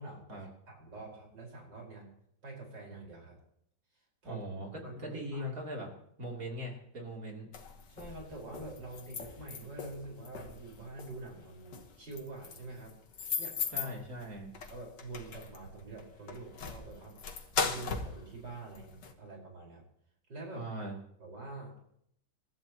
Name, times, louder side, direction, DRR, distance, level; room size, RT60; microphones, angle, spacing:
voice 1, 0.0-2.1 2.4-3.4 4.2-5.6 7.9-13.0 13.4-14.0 14.7-17.2 17.6-19.8 20.3-20.7 21.2-21.8, right 3 dB, 85° right, -1 dB, 5.5 m, -46 dB
voice 2, 4.2-5.9 6.2-7.5 13.7-14.5 20.6-20.9, equal, 55° right, 0 dB, 3.5 m, -40 dB
sound 1, 7.5-19.1, left 5 dB, 80° left, 2.0 m, -39 dB
27.5 x 13.5 x 3.0 m, 0.71 s
omnidirectional pair, 1.8 m